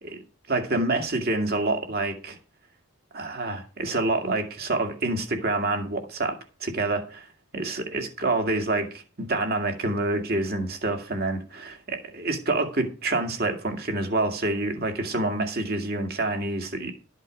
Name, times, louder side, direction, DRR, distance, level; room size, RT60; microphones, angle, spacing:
voice 1, 0.5-2.4 3.1-7.3 7.5-16.9, right 2 dB, 45° right, 5 dB, 2.1 m, -27 dB
12.5 x 8.1 x 5.2 m, 0.34 s
head